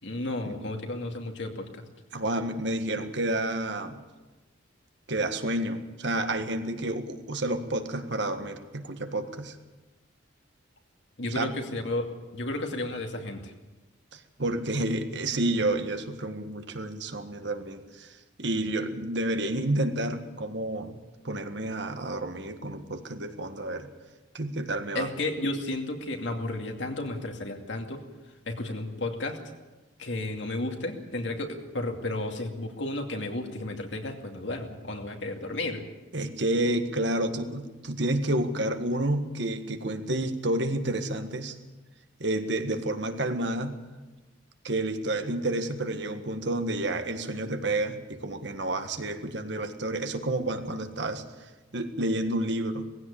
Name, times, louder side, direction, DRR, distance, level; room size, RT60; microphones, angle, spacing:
voice 1, 0.0-1.8 11.2-13.5 24.9-28.0 28.5-29.4 30.0-35.8, left 2 dB, 65° left, 3 dB, 2.5 m, -33 dB
voice 2, 2.1-4.0 5.1-9.6 11.3-11.5 14.1-21.0 21.2-23.9 24.3-25.1 36.1-41.5 42.2-43.8 44.6-51.2 51.7-52.8, right 1 dB, 60° right, 7 dB, 1.6 m, -30 dB
19.0 x 16.0 x 8.7 m, 1.2 s
head